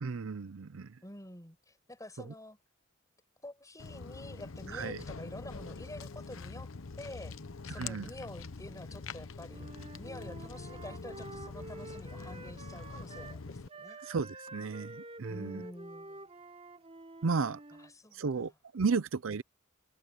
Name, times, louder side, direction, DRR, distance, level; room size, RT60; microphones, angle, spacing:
voice 1, 0.0-1.0 2.2-2.3 4.7-5.0 7.7-8.1 14.0-15.6 17.2-17.6 18.1-19.4, right 4 dB, 70° right, 0.6 m, -34 dB
voice 2, 1.0-2.6 3.4-6.7 7.0-7.3 7.7-9.7 10.0-14.0 15.3-16.3 17.8-18.5, left 1 dB, 15° left, 5.5 m, -48 dB
Walk footsteps, 3.8-13.7, left 4 dB, 70° left, 0.9 m, -44 dB
Wind instrument woodwind instrument, 9.5-13.4 13.7-17.9, right 2 dB, 30° right, 3.6 m, -49 dB
head